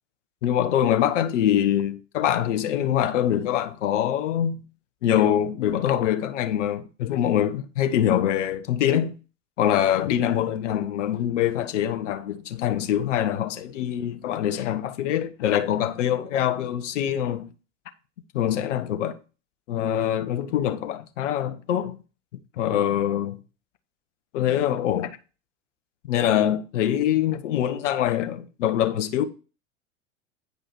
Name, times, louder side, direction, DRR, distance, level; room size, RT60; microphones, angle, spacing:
voice 1, 0.4-4.6 5.0-9.1 9.6-17.5 18.3-19.2 19.7-22.0 22.6-23.4 24.3-25.2 26.0-29.2, left 10 dB, 65° left, 1.2 m, -24 dB
9.6 x 5.1 x 4.4 m
hypercardioid pair, 85°, 38 cm